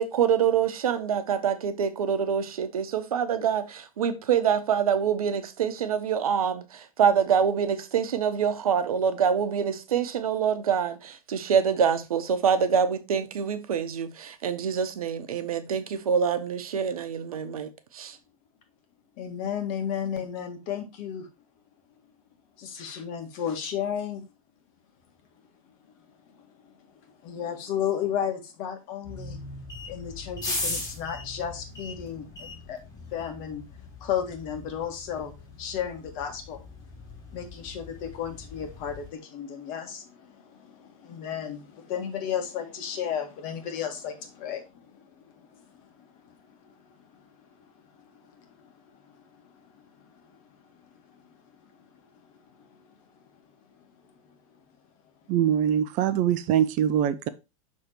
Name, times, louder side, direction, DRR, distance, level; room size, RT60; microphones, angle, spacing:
voice 1, 0.0-17.7 17.9-18.2, right 7 dB, 80° right, 0.9 m, -25 dB
voice 2, 19.2-21.3 22.6-24.2 26.4-26.7 27.2-29.4 29.9-32.8 33.1-33.7 34.0-35.3 35.6-36.7 37.3-47.3 47.9-50.4 50.7-50.9 51.2-51.3 52.2-52.3 52.6-52.8, left 8 dB, 50° left, 1.7 m, -34 dB
sound 1, 29.0-39.1, left 2 dB, 20° left, 2.8 m, -39 dB
voice 3, 55.3-57.3, right 10 dB, 40° right, 0.6 m, -23 dB
6.6 x 3.6 x 4.4 m
hypercardioid pair, 100°, 18 cm